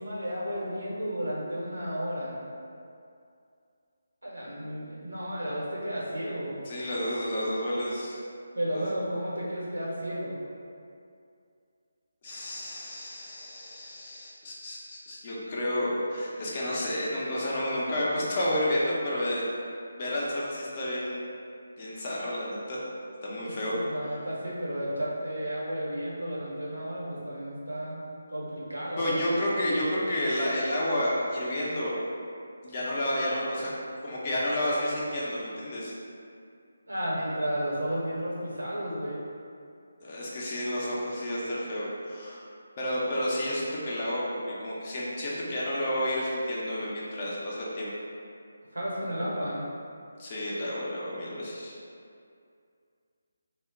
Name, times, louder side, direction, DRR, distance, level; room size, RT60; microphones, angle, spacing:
voice 1, 0.0-2.4 4.2-6.5 8.5-10.4 23.4-28.0 28.3-29.1 36.9-39.2 48.7-49.7, equal, 85° right, -6 dB, 0.8 m, -33 dB
voice 2, 6.7-8.2 8.7-8.8 12.2-19.5 20.0-21.2 21.8-22.8 23.2-23.7 29.0-31.9 32.6-33.7 34.0-35.9 40.0-42.4 42.8-47.9 50.2-51.7, left 1 dB, 35° left, -6 dB, 0.6 m, -30 dB
2.1 x 2.1 x 3.7 m, 2.4 s
figure-of-eight pair, 155°, 0 cm